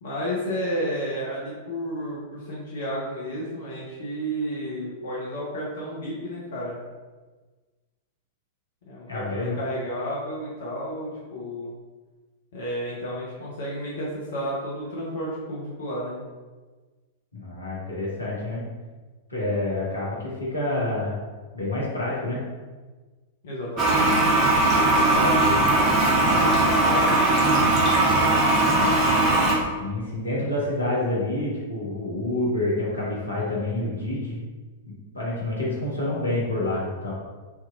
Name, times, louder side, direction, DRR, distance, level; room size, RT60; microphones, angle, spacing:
voice 1, 0.0-6.8 8.9-11.7 12.5-16.2 23.4-27.9, equal, 55° left, -6 dB, 0.7 m, -32 dB
voice 2, 9.1-9.6 17.3-18.6 19.3-21.2 21.5-22.4 29.8-34.4 34.8-37.1, left 1 dB, 80° left, -5 dB, 1.0 m, -28 dB
Toilet flush, 23.8-29.5, right 2 dB, 25° right, 0.8 m, -19 dB
3.5 x 2.9 x 2.4 m, 1.3 s
figure-of-eight pair, 100°, 0 cm